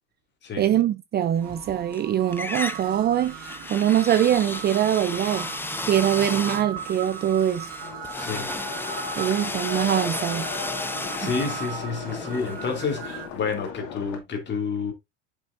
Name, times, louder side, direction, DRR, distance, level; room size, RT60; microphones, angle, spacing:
voice 1, 0.6-5.5 5.8-7.7 9.2-10.5 11.2-11.3, right 10 dB, 30° right, 0.5 m, -23 dB
sound 1, 1.4-2.0 2.3-13.2, left 2 dB, 5° left, 0.7 m, -34 dB
sound 2, 1.4-13.3, right 9 dB, 65° right, 2.1 m, -39 dB
sound 3, 7.8-14.2, left 7 dB, 80° left, 2.4 m, -36 dB
voice 2, 8.1-8.5 10.9-14.9, left 5 dB, 35° left, 2.7 m, -30 dB
8.3 x 6.3 x 2.6 m
supercardioid pair, 115°, 33 cm